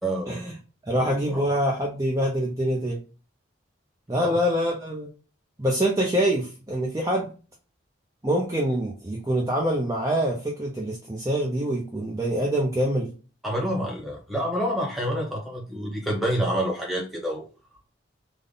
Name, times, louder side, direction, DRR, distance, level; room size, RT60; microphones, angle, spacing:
voice 1, 0.0-0.5 1.0-1.5 4.2-4.4 13.4-17.4, equal, ahead, -3 dB, 1.1 m, -28 dB
voice 2, 0.9-3.0 4.1-5.1 5.6-7.3 8.2-13.1, equal, 15° right, -2 dB, 0.6 m, -25 dB
3.6 x 2.2 x 3.8 m, 0.34 s
head